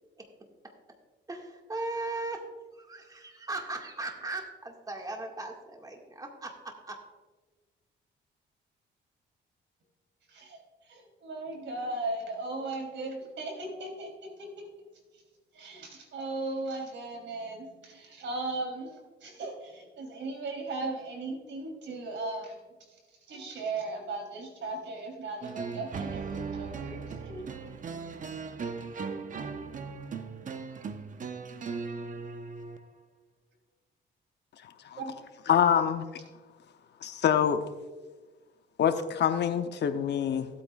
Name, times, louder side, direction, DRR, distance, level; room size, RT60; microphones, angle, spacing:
voice 1, 1.3-2.4 2.8-7.0, right 2 dB, 20° right, 1 dB, 1.9 m, -38 dB
voice 2, 10.3-14.7 15.1-15.2 15.5-27.7 35.0-35.1, right 2 dB, 70° right, 1 dB, 3.4 m, -37 dB
sound 1, 25.4-32.8, right 5 dB, 40° right, 0.8 m, -38 dB
voice 3, 35.5-36.1 37.0-37.6 38.8-40.5, left 8 dB, 60° left, 9 dB, 0.8 m, -25 dB
17.5 x 8.5 x 2.4 m, 1.3 s
cardioid pair, 90°, 20 cm